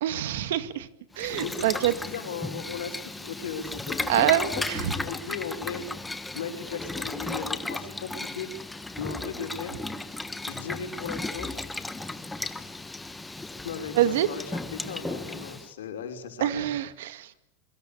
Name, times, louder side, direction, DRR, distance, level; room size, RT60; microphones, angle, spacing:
voice 1, 0.0-0.9 1.2-1.9 4.1-4.9 14.0-14.3 16.4-17.4, right 13 dB, 75° right, 12 dB, 2.1 m, -25 dB
Boiling, 1.1-15.7, left 2 dB, 5° left, 1.5 m, -35 dB
voice 2, 1.3-5.8 6.3-8.5 9.0-9.8 10.5-11.7 13.6-16.7, left 6 dB, 90° left, 5 dB, 5.7 m, -37 dB
27.0 x 23.5 x 8.6 m, 0.81 s
supercardioid pair, 135°, 0 cm